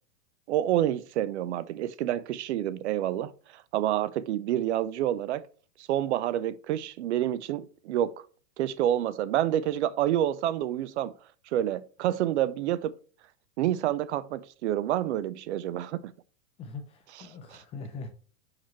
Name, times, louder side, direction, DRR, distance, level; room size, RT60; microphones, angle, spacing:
voice 1, 0.5-5.4 5.9-8.1 8.6-11.1 11.5-12.9 13.6-16.0 17.1-17.6, right 12 dB, 60° right, 0.5 m, -28 dB
voice 2, 16.6-18.1, left 4 dB, 15° left, 0.5 m, -41 dB
4.9 x 4.5 x 4.3 m
supercardioid pair, 150°, 40 cm